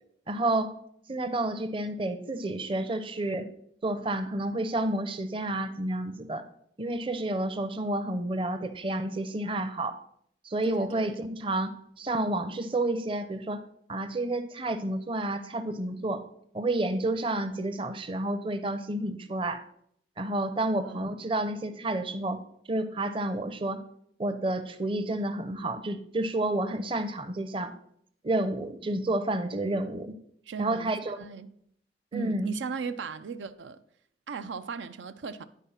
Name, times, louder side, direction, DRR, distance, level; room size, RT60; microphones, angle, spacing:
voice 1, 0.3-0.7 1.1-3.5 3.8-6.5 6.8-10.0 10.4-13.6 13.9-16.2 16.5-19.6 20.2-22.4 22.7-23.8 24.2-27.7 28.2-30.1 30.6-31.2 32.1-32.5, right 1 dB, 30° right, 0.6 m, -30 dB
voice 2, 10.6-11.2 20.8-21.1 30.5-31.5 32.1-33.8 34.3-35.4, right 5 dB, 80° right, 0.4 m, -37 dB
10.0 x 4.5 x 5.6 m
head